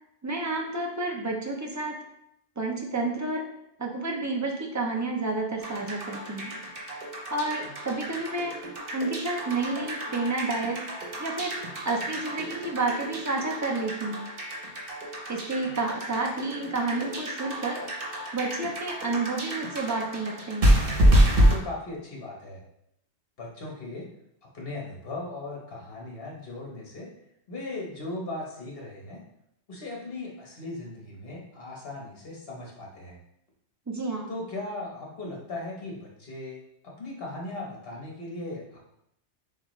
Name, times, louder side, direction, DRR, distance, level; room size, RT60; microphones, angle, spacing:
voice 1, 0.2-2.0 2.6-3.4 3.8-6.5 7.3-8.6 8.9-10.8 11.2-11.6 11.8-14.2 15.3-17.8 18.3-20.8 33.9-34.3, right 3 dB, 20° right, 1 dB, 0.4 m, -30 dB
sound 1, 5.6-21.6, equal, 50° right, 1.1 m, -28 dB
voice 2, 21.4-22.6 23.4-24.1 24.5-27.1 27.5-29.2 29.7-33.2 34.3-36.6 36.8-38.8, left 2 dB, 55° left, -2 dB, 1.4 m, -38 dB
6.9 x 2.4 x 3.1 m, 0.78 s
omnidirectional pair, 1.2 m